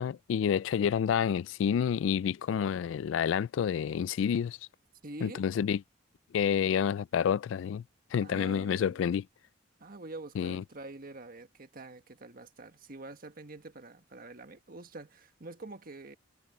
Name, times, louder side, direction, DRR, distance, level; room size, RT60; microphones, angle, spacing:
voice 1, 0.0-4.6 5.2-5.8 6.3-7.8 8.1-9.3 10.4-10.6, left 8 dB, 80° left, 0.3 m, -29 dB
voice 2, 5.0-5.4 8.2-9.1 9.8-16.2, right 2 dB, 50° right, 1.5 m, -46 dB
head